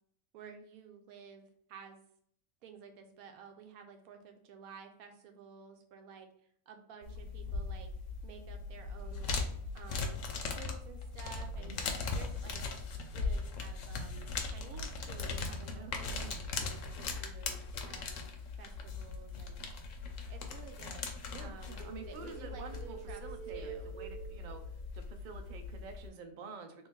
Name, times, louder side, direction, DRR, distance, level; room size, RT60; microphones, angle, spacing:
voice 1, 0.3-2.0 2.6-6.3 6.7-7.9 8.2-9.4 9.7-10.2 10.6-11.8 12.1-12.6 13.1-18.3 18.6-19.7 20.3-23.2 23.5-23.9, right 6 dB, 90° right, 5 dB, 1.1 m, -53 dB
sound 1, 7.0-26.1, left 4 dB, 70° left, 0.9 m, -39 dB
voice 2, 11.6-11.9 15.7-16.4 21.3-24.6 24.9-26.9, right 5 dB, 75° right, 6 dB, 0.4 m, -49 dB
sound 2, 21.8-25.0, right 7 dB, 35° left, 0.3 m, -47 dB
3.1 x 2.5 x 3.5 m, 0.67 s
omnidirectional pair, 1.5 m